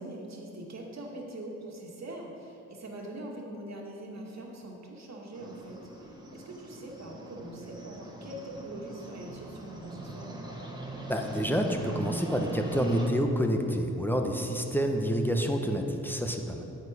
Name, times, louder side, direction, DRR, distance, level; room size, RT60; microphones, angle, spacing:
voice 1, 0.0-10.4, right 1 dB, 45° right, -1 dB, 2.1 m, -42 dB
sound 1, 5.3-13.1, right 2 dB, 10° right, 1.8 m, -41 dB
voice 2, 11.1-16.6, equal, 5° left, 3 dB, 1.1 m, -28 dB
9.1 x 8.2 x 5.1 m, 3.0 s
hypercardioid pair, 45°, 38 cm